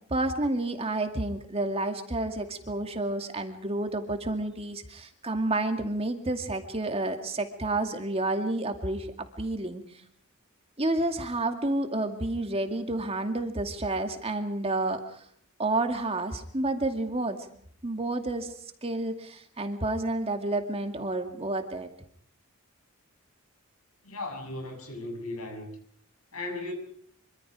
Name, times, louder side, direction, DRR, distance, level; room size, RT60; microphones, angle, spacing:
voice 1, 0.1-9.8 10.8-15.2 15.6-17.4 17.8-18.5 18.8-21.9, right 2 dB, 25° right, 5 dB, 2.4 m, -30 dB
voice 2, 24.0-25.7 26.3-26.7, left 2 dB, 80° left, 5 dB, 7.2 m, -36 dB
26.0 x 25.0 x 5.0 m, 0.62 s
head